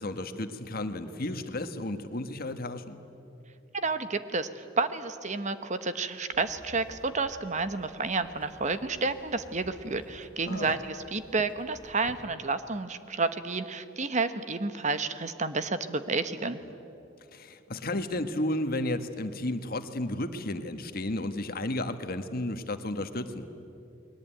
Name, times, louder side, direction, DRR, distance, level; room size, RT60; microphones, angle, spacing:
voice 1, 0.0-3.0 10.5-10.8 17.3-23.5, left 1 dB, 50° left, 9 dB, 1.5 m, -33 dB
voice 2, 3.7-16.6, right 3 dB, 40° right, 11 dB, 1.2 m, -30 dB
Walk footsteps / Chatter / Hiss, 6.3-12.3, equal, 30° left, 1.4 m, -52 dB
29.5 x 22.0 x 9.2 m, 2.7 s
head